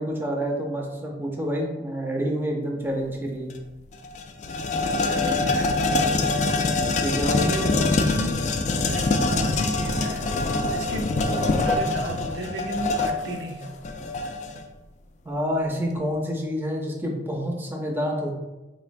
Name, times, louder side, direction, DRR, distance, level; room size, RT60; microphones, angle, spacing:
voice 1, 0.0-3.5 7.0-7.5 15.2-18.3, equal, 10° right, 0 dB, 0.5 m, -28 dB
sound 1, 3.5-3.6 3.9-14.6, left 3 dB, 40° left, 0.3 m, -24 dB
voice 2, 4.8-6.8 7.2-8.5 8.9-10.3 10.6-13.8, right 1 dB, 75° right, 2 dB, 0.5 m, -34 dB
4.3 x 3.0 x 2.5 m, 1.1 s
head